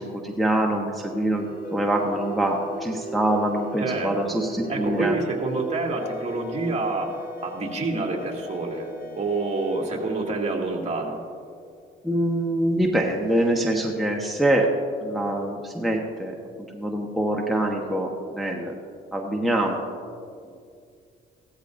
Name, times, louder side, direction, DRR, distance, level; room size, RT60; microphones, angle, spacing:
voice 1, 0.0-5.2 12.0-14.7 15.0-16.3 16.7-18.7 19.1-19.8, right 1 dB, ahead, -1 dB, 1.2 m, -24 dB
sound 1, 1.1-11.4, right 1 dB, 50° left, 1.2 m, -37 dB
voice 2, 3.8-4.4 4.7-7.1 7.4-11.2, right 3 dB, 35° right, -1 dB, 2.4 m, -28 dB
16.0 x 13.5 x 2.6 m, 2.3 s
cardioid pair, 90°, 20 cm